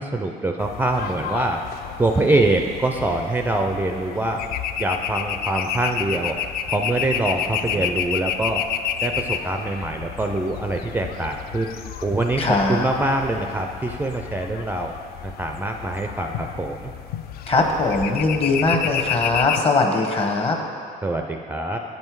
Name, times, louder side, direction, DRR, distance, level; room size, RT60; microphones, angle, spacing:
voice 1, 0.0-1.6 2.0-4.4 4.8-6.4 6.7-8.6 9.0-11.7 12.0-14.9 15.2-16.9 21.0-21.8, right 2 dB, 10° right, 3 dB, 0.4 m, -24 dB
sound 1, 0.6-19.6, left 9 dB, 65° left, 0.4 m, -30 dB
voice 2, 12.4-12.9 17.5-20.6, left 3 dB, 35° left, 2 dB, 1.1 m, -21 dB
8.8 x 5.5 x 4.6 m, 2.3 s
cardioid pair, 110°, 17 cm